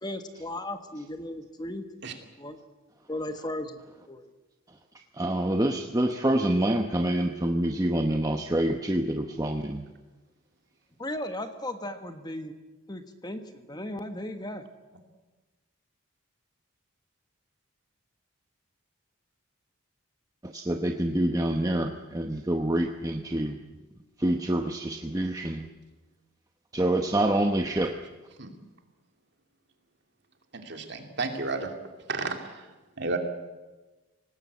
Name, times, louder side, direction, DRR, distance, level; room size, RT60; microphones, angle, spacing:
voice 1, 0.0-1.9 2.4-2.6 3.1-3.8 4.1-4.3 11.0-12.5 12.9-14.7, left 1 dB, 20° left, 7 dB, 1.3 m, -36 dB
voice 2, 5.1-9.8 20.4-23.6 24.2-25.7 26.7-27.9, right 1 dB, 15° right, 4 dB, 0.9 m, -26 dB
voice 3, 30.5-31.7 32.1-32.4 33.0-33.2, right 3 dB, 55° right, 4 dB, 2.8 m, -31 dB
25.0 x 19.0 x 8.3 m, 1.2 s
head